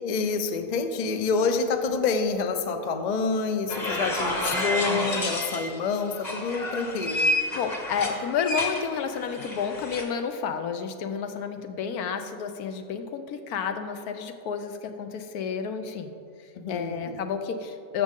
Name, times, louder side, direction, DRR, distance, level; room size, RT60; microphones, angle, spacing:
voice 1, 0.0-7.3 16.6-17.2, left 4 dB, 55° left, 7 dB, 0.4 m, -27 dB
sound 1, 3.7-5.8 6.2-10.0, left 1 dB, 30° left, 1.1 m, -29 dB
voice 2, 7.5-16.1 16.7-18.0, left 6 dB, 80° left, 7 dB, 1.2 m, -31 dB
13.5 x 6.3 x 3.7 m, 2.3 s
omnidirectional pair, 1.6 m